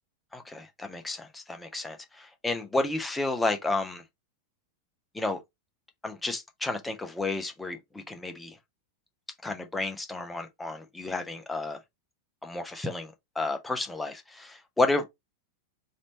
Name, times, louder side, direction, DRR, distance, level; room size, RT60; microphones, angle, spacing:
voice 1, 0.3-4.0 5.1-5.4 6.0-8.6 9.4-11.8 12.4-15.1, left 2 dB, 10° left, 0.8 m, -31 dB
3.2 x 2.7 x 4.2 m
figure-of-eight pair, 90°, 0 cm